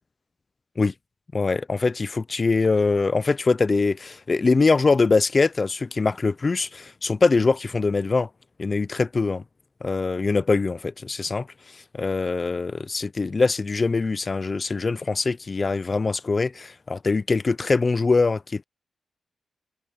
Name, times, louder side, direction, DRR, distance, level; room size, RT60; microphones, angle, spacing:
voice 1, 1.3-8.3 8.6-9.4 9.8-11.5 11.9-18.6, left 4 dB, 30° left, 0.5 m, -23 dB
wide cardioid pair, 120°, 0 cm